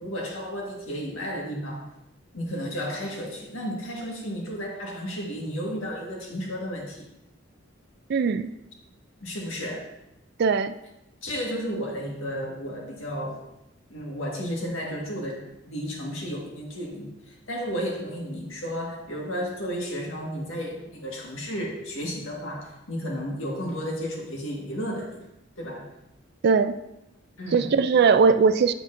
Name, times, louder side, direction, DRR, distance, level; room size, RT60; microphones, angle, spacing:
voice 1, 0.0-1.9 2.3-7.1 9.2-9.9 11.2-13.4 13.9-25.2 25.6-25.9 27.4-27.8, equal, 80° left, -1 dB, 1.7 m, -33 dB
voice 2, 8.1-8.5 10.4-10.8 26.4-26.8 27.5-28.7, right 5 dB, 55° right, 12 dB, 0.3 m, -20 dB
7.7 x 7.4 x 2.6 m, 0.88 s
head